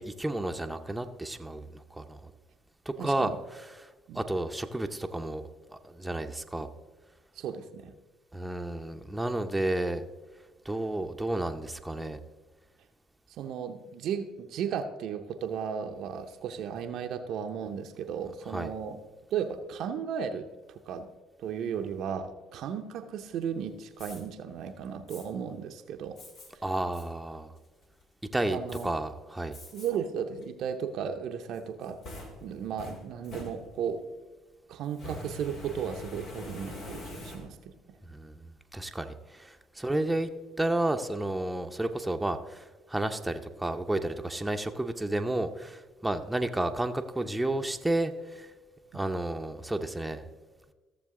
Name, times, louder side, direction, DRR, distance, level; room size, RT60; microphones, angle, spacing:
voice 1, 0.0-2.3 2.9-3.9 4.1-6.7 8.3-10.0 10.6-12.2 18.5-18.7 26.6-27.5 28.3-29.6 38.1-40.3 40.6-48.5 48.9-50.2, right 1 dB, 10° right, 5 dB, 0.8 m, -32 dB
voice 2, 3.0-3.4 4.1-4.2 7.4-7.9 13.4-19.0 19.3-21.1 21.4-26.2 28.5-28.9 29.7-32.0 32.4-34.0 34.7-38.0, right 7 dB, 65° right, 6 dB, 0.7 m, -35 dB
Fire, 24.0-24.2 25.1-25.2 26.2-26.5 26.9-27.1 27.6-28.0 28.7-28.8 29.5-29.9 30.4-30.5 31.5-34.0 34.9-37.8, left 1 dB, 65° left, 2.3 m, -44 dB
15.0 x 6.9 x 3.7 m, 1.3 s
hypercardioid pair, 55°, 0 cm